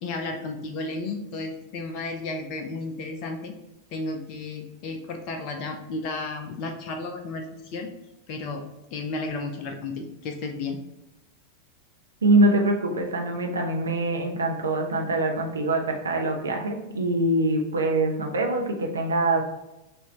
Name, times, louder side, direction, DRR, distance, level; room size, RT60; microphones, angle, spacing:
voice 1, 0.0-3.5 3.9-7.9 8.3-8.6 8.9-10.8, left 3 dB, 40° left, 4 dB, 0.7 m, -33 dB
voice 2, 12.2-19.4, right 2 dB, 70° right, 2 dB, 0.7 m, -24 dB
6.1 x 2.7 x 3.1 m, 0.95 s
figure-of-eight pair, 90°, 0 cm